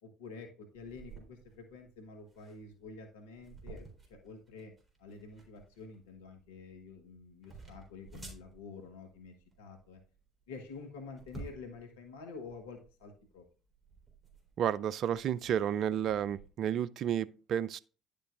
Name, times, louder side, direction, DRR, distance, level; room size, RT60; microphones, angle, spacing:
voice 1, 0.0-4.7 5.0-10.0 10.5-13.4, left 4 dB, 75° left, 1.3 m, -49 dB
sound 1, 0.7-16.5, right 3 dB, 20° right, 3.8 m, -54 dB
voice 2, 14.6-17.8, right 9 dB, 50° right, 0.4 m, -31 dB
10.5 x 6.8 x 2.5 m
figure-of-eight pair, 55°, 0 cm